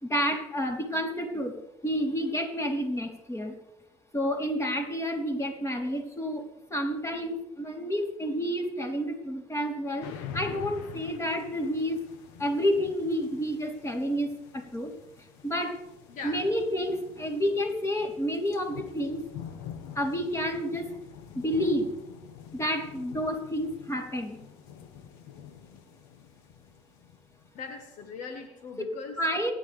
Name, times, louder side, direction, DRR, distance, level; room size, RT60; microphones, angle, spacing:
voice 1, 0.0-1.5 1.8-3.5 4.1-6.4 6.7-12.0 12.4-14.3 14.5-14.9 15.4-15.7 16.2-19.2 19.9-20.9 21.3-21.9 22.5-24.4 29.2-29.5, equal, 20° left, 2 dB, 3.5 m, -29 dB
sound 1, 10.0-27.8, left 8 dB, 85° left, 1.4 m, -46 dB
voice 2, 16.1-16.5 27.5-29.2, left 5 dB, 65° left, 6 dB, 1.6 m, -41 dB
30.0 x 11.0 x 3.4 m, 0.91 s
hypercardioid pair, 65°, 14 cm